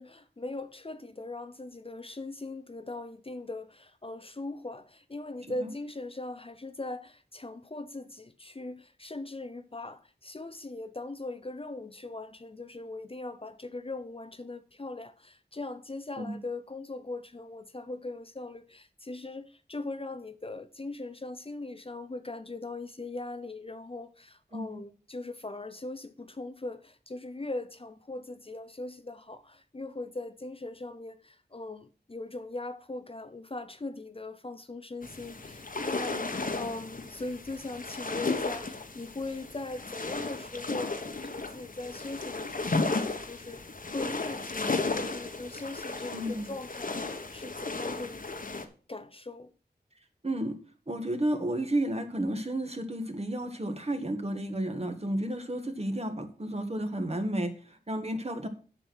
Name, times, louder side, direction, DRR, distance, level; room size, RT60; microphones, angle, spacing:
voice 1, 0.0-43.6 43.9-48.5 48.9-49.5, left 2 dB, 35° left, 0.6 m, -40 dB
sound 1, 35.0-48.6, left 3 dB, 55° left, 1.2 m, -34 dB
voice 2, 46.1-46.5 50.2-50.5 50.9-58.5, right 1 dB, 35° right, 1.6 m, -32 dB
7.9 x 6.1 x 6.3 m
wide cardioid pair, 55°, 17 cm